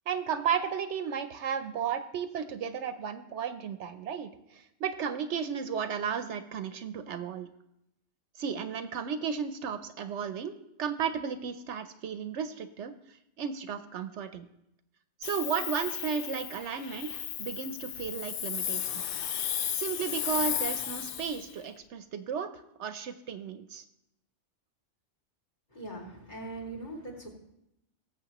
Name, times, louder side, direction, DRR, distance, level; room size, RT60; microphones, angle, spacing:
voice 1, 0.1-7.5 8.4-14.4 15.2-19.0 19.7-23.8, right 7 dB, 70° right, 10 dB, 0.9 m, -34 dB
Hiss, 15.2-21.5, left 9 dB, 60° left, 0.6 m, -34 dB
voice 2, 25.7-27.3, right 2 dB, 40° left, -3 dB, 2.5 m, -41 dB
19.0 x 7.4 x 3.0 m, 0.83 s
omnidirectional pair, 1.3 m